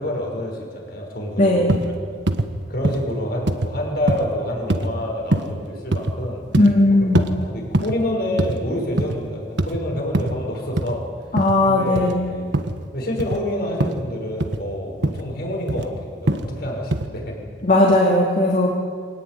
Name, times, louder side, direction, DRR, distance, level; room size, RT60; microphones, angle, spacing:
voice 1, 0.0-1.9 2.7-6.4 7.0-11.1 11.6-12.6 12.9-17.4, left 1 dB, 60° left, 0 dB, 6.5 m, -27 dB
voice 2, 1.4-1.7 6.6-7.2 11.3-12.3 17.6-18.7, left 1 dB, 45° left, -3 dB, 2.9 m, -17 dB
sound 1, 1.7-1.9 2.3-2.5 2.8-3.1 3.5-3.7 4.1-4.3 4.7-4.9 5.3-5.6 5.9-6.2 6.5-6.8 7.2-7.3 7.7-8.0 8.4-8.6 8.9-9.2 9.6-9.8 10.1-10.3 10.8-10.9 11.4-11.6 12.0-12.1 12.5-12.8 13.2-13.4 13.8-14.0 14.4-14.6 15.0-15.2 15.7-15.9 16.3-16.5 16.9-17.1, right 1 dB, 80° right, 1.4 m, -22 dB
24.5 x 18.0 x 9.7 m, 2.1 s
head